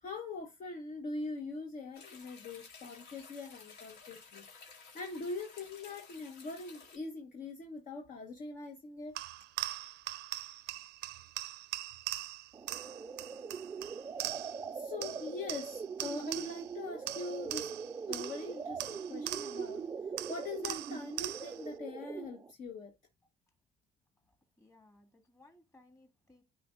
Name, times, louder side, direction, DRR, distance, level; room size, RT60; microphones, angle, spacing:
voice 1, 0.0-4.4 4.9-9.2 14.7-17.7 18.1-19.9 20.3-22.9, left 3 dB, 50° left, 1.2 m, -42 dB
sound 1, 1.9-7.0, left 5 dB, 70° left, 2.6 m, -54 dB
sound 2, 9.2-14.7 15.0-16.7 17.1-19.8 20.2-21.7, right 16 dB, 85° right, 0.6 m, -41 dB
sound 3, 12.5-22.5, right 5 dB, 20° right, 0.3 m, -42 dB
voice 2, 24.6-26.4, left 2 dB, 20° left, 2.0 m, -62 dB
10.0 x 4.1 x 2.4 m
cardioid pair, 110°, 17 cm